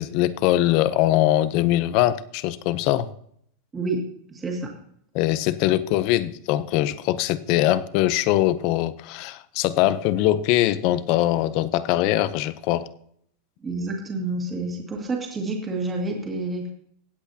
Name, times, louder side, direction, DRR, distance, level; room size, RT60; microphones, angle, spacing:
voice 1, 0.0-3.1 5.1-12.9, left 14 dB, 45° left, 16 dB, 0.6 m, -22 dB
voice 2, 3.7-4.7 13.6-16.7, right 2 dB, 15° right, 0 dB, 2.0 m, -29 dB
17.0 x 8.2 x 2.8 m, 0.67 s
supercardioid pair, 165°, 0 cm